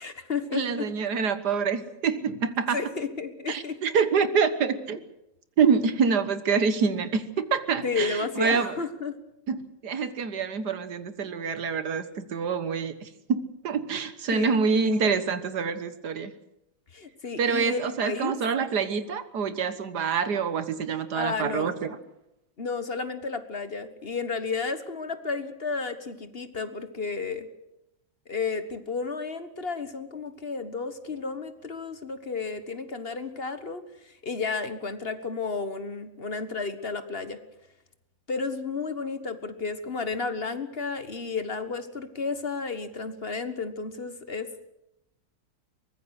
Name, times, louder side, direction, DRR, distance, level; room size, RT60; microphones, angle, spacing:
voice 1, 0.0-0.9 2.7-3.8 7.8-9.2 14.3-14.6 16.9-18.3 21.1-21.8 22.6-27.5 28.3-37.4 38.3-44.5, left 4 dB, 35° left, 10 dB, 1.5 m, -32 dB
voice 2, 0.5-2.8 3.5-5.0 5.6-8.7 9.5-16.3 17.4-22.0, right 5 dB, 65° right, 12 dB, 1.9 m, -26 dB
23.5 x 20.0 x 6.5 m, 0.86 s
omnidirectional pair, 1.9 m